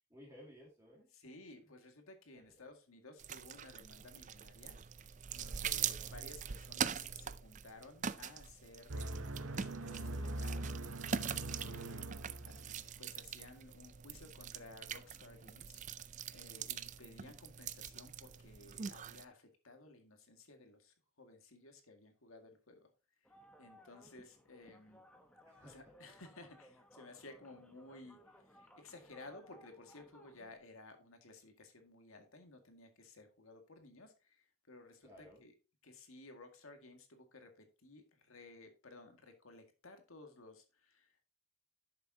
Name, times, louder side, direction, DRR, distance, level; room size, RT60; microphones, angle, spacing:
voice 1, 0.1-1.3 2.3-2.4 16.4-16.7 25.4-25.9 35.0-35.4, equal, 15° right, 2.3 m, -58 dB
voice 2, 1.1-12.0 12.4-15.8 16.3-22.9 23.6-25.0 25.6-28.2 28.5-35.5 35.8-41.2, left 2 dB, 85° left, 2.0 m, -56 dB
sound 1, 3.2-19.2, right 8 dB, 35° right, 0.4 m, -43 dB
sound 2, 8.9-13.0, right 1 dB, 75° right, 0.9 m, -42 dB
sound 3, 23.2-30.6, equal, 5° left, 1.0 m, -62 dB
11.0 x 6.9 x 2.8 m
head